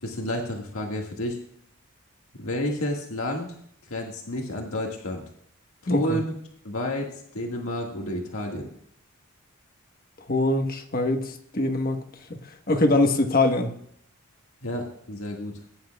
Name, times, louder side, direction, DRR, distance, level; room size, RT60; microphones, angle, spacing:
voice 1, 0.0-1.4 2.4-3.5 3.9-5.2 5.8-6.3 6.6-8.7 14.6-15.5, left 1 dB, 85° left, 1 dB, 1.8 m, -30 dB
voice 2, 5.9-6.2 10.3-12.0 12.7-13.7, left 2 dB, 45° left, 5 dB, 1.2 m, -23 dB
17.5 x 10.5 x 2.3 m, 0.67 s
head